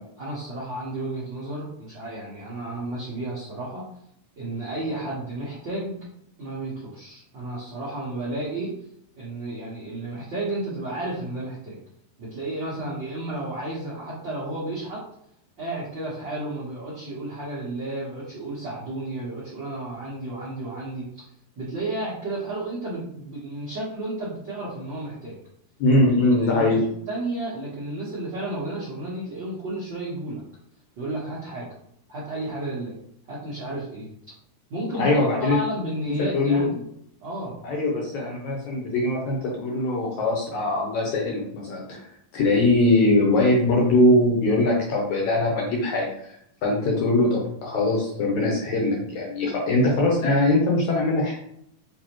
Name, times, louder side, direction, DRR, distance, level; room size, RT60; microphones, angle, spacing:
voice 1, 0.2-3.8 4.4-6.0 6.4-8.7 9.2-11.8 12.2-15.0 15.6-21.2 21.6-25.4 26.4-26.8 27.1-30.4 31.0-31.7 32.1-32.9 33.3-34.1 34.7-36.8 37.2-37.6, right 1 dB, 75° right, -8 dB, 1.0 m, -32 dB
voice 2, 25.8-26.8 35.0-35.6 36.2-36.7 37.6-42.0 42.3-46.1 46.6-51.4, left 2 dB, 75° left, -2 dB, 1.9 m, -21 dB
6.6 x 2.7 x 3.0 m, 0.72 s
omnidirectional pair, 4.1 m